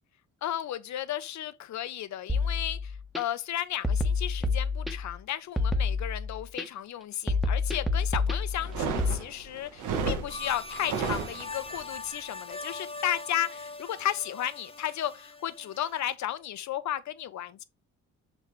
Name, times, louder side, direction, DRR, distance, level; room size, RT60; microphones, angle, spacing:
voice 1, 0.4-17.6, left 11 dB, 65° left, 0.9 m, -34 dB
sound 1, 2.3-3.2 3.8-5.2 5.6-6.6 7.3-9.2, left 3 dB, ahead, 1.2 m, -28 dB
sound 2, 8.6-11.8, right 5 dB, 80° right, 1.5 m, -33 dB
sound 3, 10.3-16.1, left 3 dB, 20° left, 0.9 m, -42 dB
6.4 x 4.7 x 3.3 m
cardioid pair, 90°, 30 cm